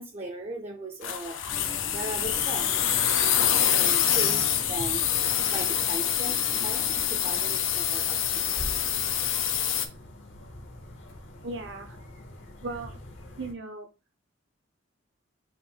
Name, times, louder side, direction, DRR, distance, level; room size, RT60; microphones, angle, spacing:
voice 1, 0.0-1.4 1.9-8.7, right 2 dB, 35° right, 1 dB, 0.6 m, -39 dB
sound 1, 1.0-9.9, left 10 dB, 85° left, 0.6 m, -26 dB
sound 2, 1.4-13.5, left 1 dB, 65° left, 1.0 m, -44 dB
Musical instrument, 1.5-7.6, left 3 dB, 20° left, 0.4 m, -44 dB
voice 2, 11.4-12.0 12.6-13.0 13.4-13.9, right 3 dB, 65° right, 5 dB, 1.0 m, -37 dB
4.9 x 2.6 x 3.7 m, 0.30 s
head